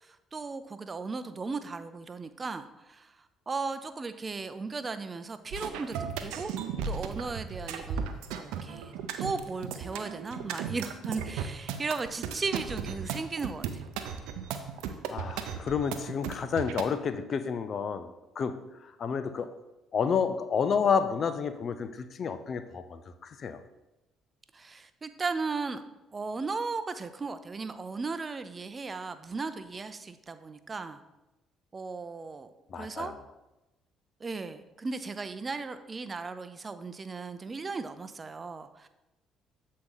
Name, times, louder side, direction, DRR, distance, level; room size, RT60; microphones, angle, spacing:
voice 1, 0.0-3.2 3.5-6.5 6.8-8.9 9.2-13.8 24.5-25.8 26.1-31.0 31.7-33.1 34.2-38.9, right 4 dB, 35° right, 11 dB, 0.5 m, -36 dB
sound 1, 5.5-16.9, right 7 dB, 75° right, 0.5 m, -36 dB
voice 2, 15.1-18.1 18.4-18.6 18.8-19.5 19.9-23.6 32.7-33.1, left 6 dB, 50° left, 11 dB, 0.5 m, -30 dB
7.6 x 4.2 x 3.9 m, 0.99 s
hypercardioid pair, 60°, 0 cm